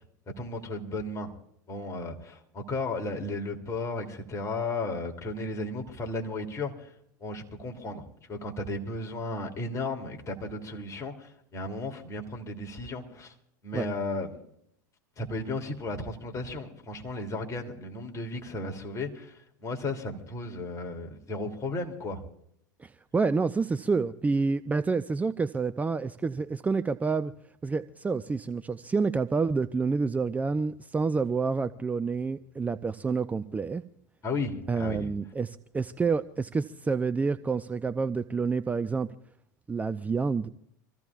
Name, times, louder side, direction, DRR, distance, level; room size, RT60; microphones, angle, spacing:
voice 1, 0.4-1.3 1.7-6.9 7.2-8.0 8.3-13.3 13.6-14.4 15.2-22.2 34.2-35.1, left 2 dB, 30° left, 3.0 m, -34 dB
voice 2, 22.8-27.3 27.6-33.8 34.7-39.1 39.7-40.5, right 4 dB, 15° right, 0.5 m, -28 dB
27.0 x 15.0 x 2.4 m
hypercardioid pair, 85°, 10 cm